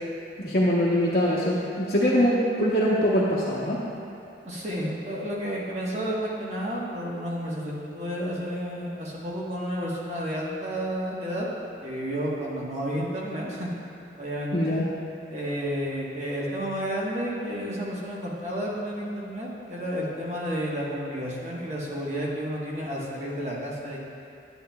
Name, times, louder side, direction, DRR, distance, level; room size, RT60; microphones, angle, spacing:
voice 1, 0.4-3.8 14.5-14.8, equal, 60° left, -8 dB, 0.9 m, -23 dB
voice 2, 4.4-11.5 11.8-13.7 14.2-14.7 15.3-24.0, equal, 40° right, -5 dB, 1.2 m, -31 dB
9.5 x 8.9 x 2.3 m, 2.7 s
head